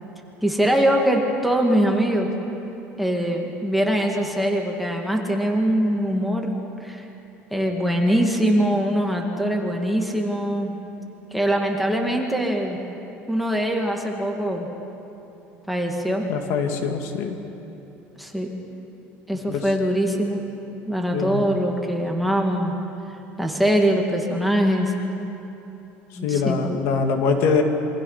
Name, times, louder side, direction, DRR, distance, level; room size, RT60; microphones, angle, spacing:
voice 1, 0.4-2.3 3.0-7.1 7.5-10.7 11.3-12.8 13.3-14.7 15.7-16.3 18.2-18.5 19.3-20.4 20.8-22.7 23.4-24.9 26.2-26.6, equal, ahead, 0 dB, 2.0 m, -22 dB
voice 2, 16.3-17.4 19.5-19.6 21.1-21.4 26.2-27.6, left 5 dB, 65° left, 4 dB, 2.3 m, -23 dB
28.0 x 24.0 x 5.7 m, 3.0 s
cardioid pair, 150°, 5 cm